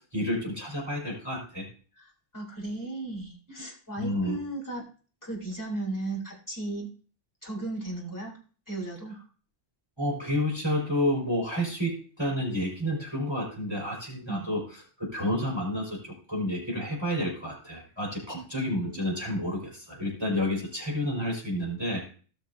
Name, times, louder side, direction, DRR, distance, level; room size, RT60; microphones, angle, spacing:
voice 1, 0.0-1.6 4.0-4.4 10.0-14.6 15.0-22.0, left 1 dB, 20° right, -3 dB, 5.0 m, -30 dB
voice 2, 2.0-4.8 5.2-6.9 7.4-8.4 8.7-9.2 14.3-14.5 18.3-18.4, right 2 dB, 15° left, -3 dB, 3.6 m, -35 dB
18.5 x 6.4 x 2.7 m, 0.40 s
omnidirectional pair, 1.3 m